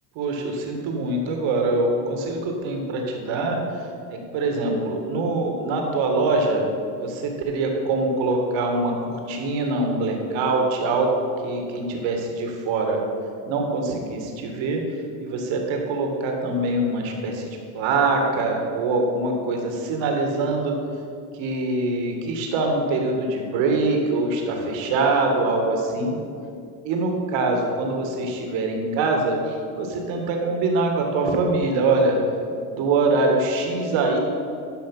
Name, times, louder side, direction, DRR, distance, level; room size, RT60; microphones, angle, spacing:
voice 1, 0.2-6.7 7.0-13.0 13.4-14.8 15.2-20.7 21.3-26.2 26.8-32.2 32.7-34.2, right 2 dB, 65° right, 2 dB, 2.0 m, -24 dB
12.5 x 5.2 x 5.5 m, 2.5 s
hypercardioid pair, 70°, 49 cm